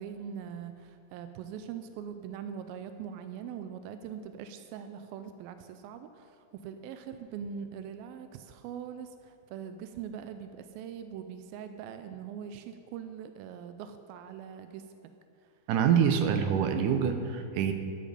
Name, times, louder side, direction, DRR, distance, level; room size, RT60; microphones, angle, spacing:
voice 1, 0.0-14.9, right 8 dB, 90° right, 9 dB, 2.4 m, -42 dB
voice 2, 15.7-17.7, right 7 dB, 75° right, 6 dB, 2.2 m, -25 dB
12.5 x 10.5 x 5.2 m, 2.4 s
omnidirectional pair, 4.1 m